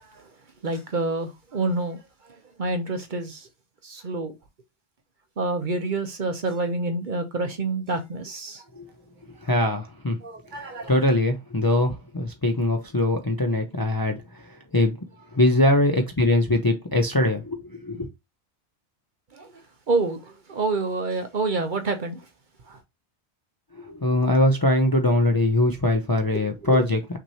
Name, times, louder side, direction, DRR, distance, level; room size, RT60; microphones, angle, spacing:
voice 1, 0.6-2.0 2.6-3.5 3.8-4.3 5.4-8.6 10.2-10.9 19.3-19.5 19.9-22.2 22.7-22.8 26.6-26.9, right 3 dB, 50° right, 0.8 m, -27 dB
voice 2, 9.4-10.2 10.5-15.0 15.3-18.1 23.7-27.2, left 1 dB, 25° left, 0.5 m, -22 dB
6.0 x 3.0 x 2.8 m
omnidirectional pair, 1.1 m